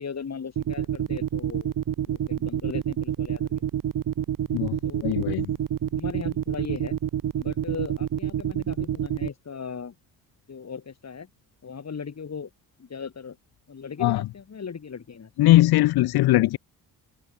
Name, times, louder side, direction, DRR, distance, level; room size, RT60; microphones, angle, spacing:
voice 1, 0.0-1.8 2.1-3.6 4.8-5.3 5.9-7.0 7.3-10.0 10.5-11.3 11.6-12.5 12.8-13.4 13.7-15.3, left 6 dB, 40° left, 5.8 m, -38 dB
sound 1, 0.6-9.3, right 10 dB, 55° right, 1.7 m, -27 dB
voice 2, 5.0-5.5 14.0-14.2 15.4-16.6, left 16 dB, 65° left, 0.7 m, -20 dB
open air
cardioid pair, 80°, 40 cm